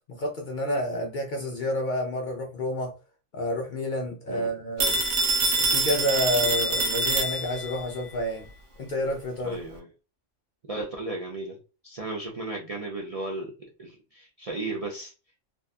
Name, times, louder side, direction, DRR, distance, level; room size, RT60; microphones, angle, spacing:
voice 1, 0.1-2.9 3.3-5.0 5.7-8.5 8.8-9.6, left 1 dB, 55° left, 0.5 m, -29 dB
Telephone, 4.8-7.8, right 2 dB, 75° right, 0.9 m, -25 dB
voice 2, 9.4-9.9 10.7-11.6 11.8-13.5 13.8-15.1, right 2 dB, 50° right, 0.4 m, -34 dB
2.6 x 2.2 x 2.4 m
omnidirectional pair, 1.2 m